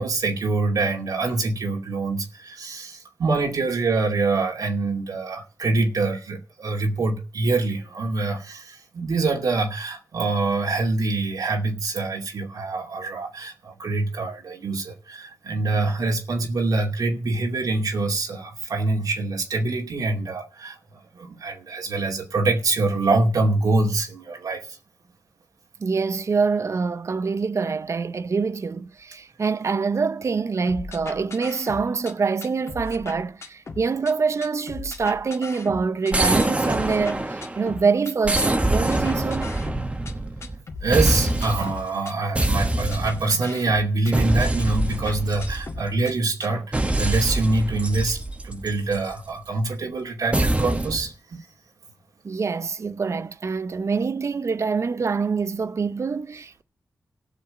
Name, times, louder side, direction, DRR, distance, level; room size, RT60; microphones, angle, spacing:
voice 1, 0.0-24.6 40.8-48.2 48.4-51.5, right 3 dB, 85° right, 2.5 m, -25 dB
voice 2, 25.8-39.5 52.2-56.6, right 5 dB, 50° right, 0.7 m, -25 dB
sound 1, 30.7-32.1 32.4-34.1 34.4-36.1 36.4-38.1 38.4-40.1 40.4-42.1 42.4-44.1 44.4-46.1 46.4-46.5, left 4 dB, 50° left, 2.0 m, -38 dB
sound 2, 36.1-37.7 38.2-40.6 40.9-41.8 42.3-43.4 44.1-46.0 46.7-49.1 50.3-51.1, right 1 dB, 20° right, 1.4 m, -24 dB
15.0 x 6.2 x 8.8 m
wide cardioid pair, 100°, 6 cm